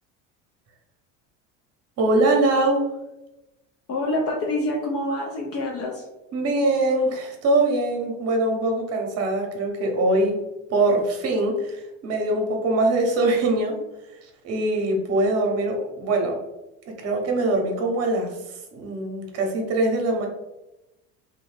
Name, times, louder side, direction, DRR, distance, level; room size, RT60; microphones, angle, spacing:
voice 1, 2.0-2.9 6.3-10.4 10.7-13.8 14.4-16.4 16.9-20.3, right 2 dB, 45° right, 2 dB, 0.8 m, -23 dB
voice 2, 3.9-6.1, left 1 dB, 40° left, -1 dB, 0.6 m, -26 dB
2.7 x 2.3 x 3.2 m, 0.97 s
supercardioid pair, 105°, 35 cm